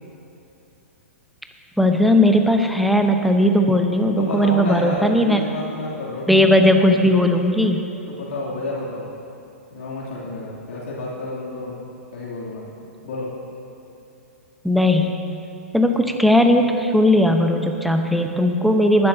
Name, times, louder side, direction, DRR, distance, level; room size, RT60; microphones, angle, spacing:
voice 1, 1.8-5.4 6.3-7.9 14.6-15.2 15.7-19.1, left 1 dB, ahead, 4 dB, 0.8 m, -17 dB
voice 2, 4.2-6.4 8.1-9.1 9.7-11.8 12.1-12.7 13.0-13.3, left 2 dB, 65° left, -6 dB, 2.8 m, -30 dB
19.0 x 11.5 x 2.8 m, 2.9 s
hypercardioid pair, 115°, 8 cm